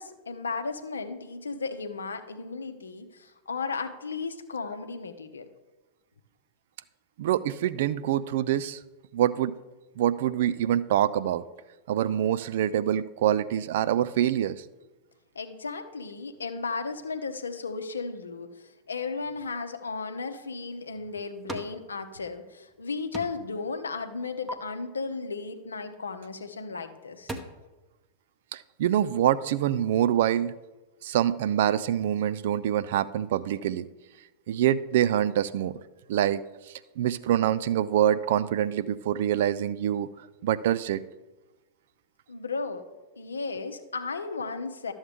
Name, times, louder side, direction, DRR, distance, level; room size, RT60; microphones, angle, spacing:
voice 1, 0.0-5.5 15.3-27.4 42.3-42.8 43.2-44.9, left 4 dB, 75° left, 8 dB, 0.7 m, -35 dB
voice 2, 7.2-8.8 9.1-9.6 10.0-11.4 11.9-14.6 28.5-30.5 31.0-33.9 34.5-35.7 36.1-36.4 37.0-40.1 40.4-41.0, right 11 dB, 55° right, 15 dB, 0.3 m, -25 dB
sound 1, 20.7-21.8 22.1-22.8 23.1-23.6 23.9-24.5 26.3-26.5 26.9-27.4, right 1 dB, 10° right, 0.8 m, -40 dB
12.0 x 7.1 x 3.4 m, 1.2 s
figure-of-eight pair, 90°, 0 cm